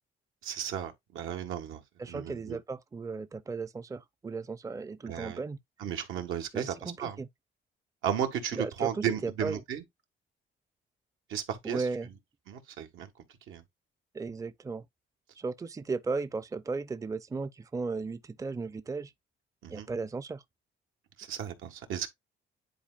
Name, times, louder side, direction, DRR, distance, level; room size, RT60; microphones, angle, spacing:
voice 1, 0.4-1.8 2.1-2.6 5.1-5.4 5.8-7.2 8.0-9.8 11.3-12.1 12.5-13.1 13.5-13.6 19.6-19.9 21.2-22.1, right 9 dB, 85° right, 1.6 m, -34 dB
voice 2, 2.0-5.6 6.5-7.3 8.5-9.6 11.6-12.1 14.1-14.8 15.4-19.1 19.7-20.4, right 4 dB, 15° right, 0.5 m, -35 dB
10.5 x 4.2 x 2.4 m
cardioid pair, 90°, 20 cm